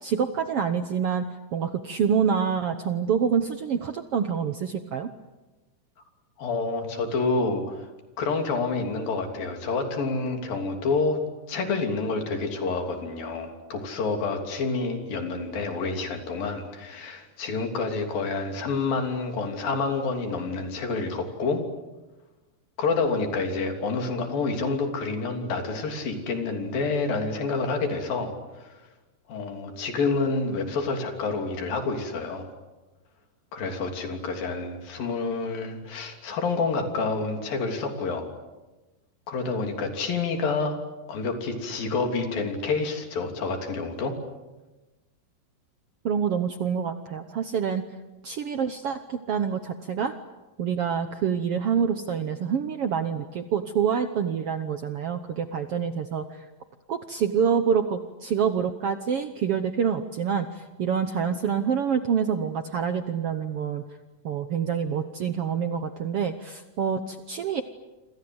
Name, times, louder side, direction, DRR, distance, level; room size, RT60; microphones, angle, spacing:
voice 1, 0.0-1.2 1.5-5.1 46.0-47.8 48.2-50.1 50.6-56.4 56.9-63.8 64.2-67.6, right 7 dB, 70° right, 9 dB, 1.4 m, -26 dB
voice 2, 6.4-7.9 8.2-11.2 11.5-21.6 22.8-28.3 28.6-28.8 29.3-32.5 33.5-38.3 39.3-40.8 41.1-44.2, left 4 dB, 90° left, 4 dB, 5.0 m, -28 dB
27.5 x 26.5 x 8.0 m, 1.1 s
omnidirectional pair, 4.0 m